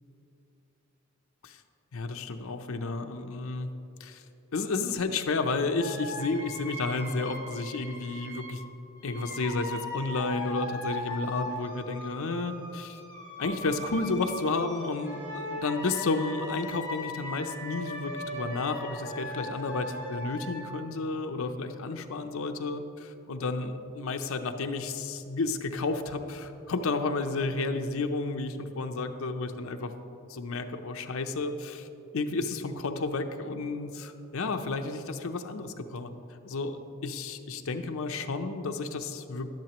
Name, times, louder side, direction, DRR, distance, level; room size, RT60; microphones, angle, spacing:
voice 1, 1.9-3.7 4.0-4.2 4.5-8.6 9.0-13.0 13.4-29.9 30.3-31.9 32.1-36.8 37.0-39.5, left 3 dB, 80° left, 6 dB, 0.6 m, -32 dB
sound 1, 5.8-8.6 9.0-20.6, left 1 dB, 15° right, 2.3 m, -39 dB
11.5 x 10.5 x 3.0 m, 2.8 s
head